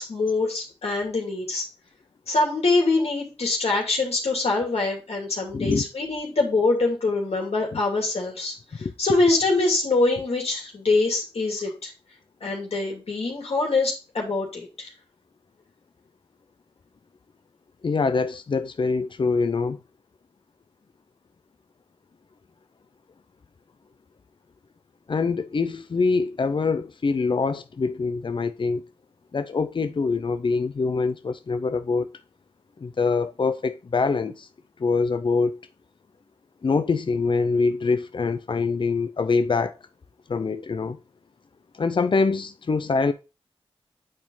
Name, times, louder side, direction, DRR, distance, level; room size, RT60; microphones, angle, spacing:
voice 1, 0.0-1.6 2.3-11.9 12.4-14.9, left 3 dB, 85° left, 2.6 m, -24 dB
voice 2, 5.5-5.8 8.8-8.9 17.8-19.8 25.1-28.8 29.3-32.1 32.8-34.5 34.8-35.6 36.6-39.8 40.3-41.0 41.8-43.1, left 4 dB, 55° left, 0.6 m, -24 dB
8.6 x 4.4 x 3.8 m
cardioid pair, 55°, 10 cm